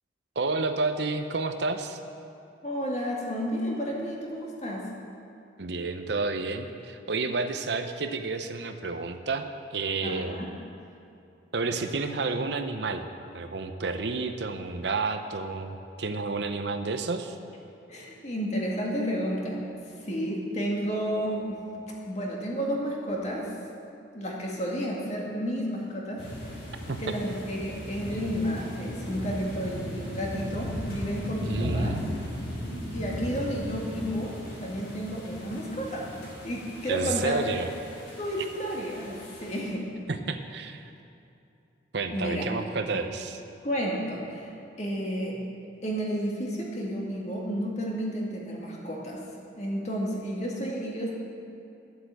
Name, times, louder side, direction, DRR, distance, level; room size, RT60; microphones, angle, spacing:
voice 1, 0.4-2.0 5.6-9.5 9.7-10.6 11.5-13.1 13.3-17.4 26.9-27.1 31.4-32.2 36.9-37.7 40.1-40.8 41.9-43.4, right 3 dB, 65° right, 7 dB, 0.7 m, -30 dB
voice 2, 2.6-4.9 10.0-10.5 17.9-19.7 20.0-21.6 22.1-23.5 24.1-26.2 27.0-31.9 32.9-36.1 36.4-37.6 38.2-39.9 42.1-42.4 42.9-43.0 43.6-44.5 44.8-45.4 45.8-49.2 49.6-51.1, equal, 35° left, -3 dB, 2.1 m, -31 dB
sound 1, 26.2-39.6, equal, 75° left, 3.6 m, -37 dB
11.5 x 8.2 x 7.8 m, 2.7 s
head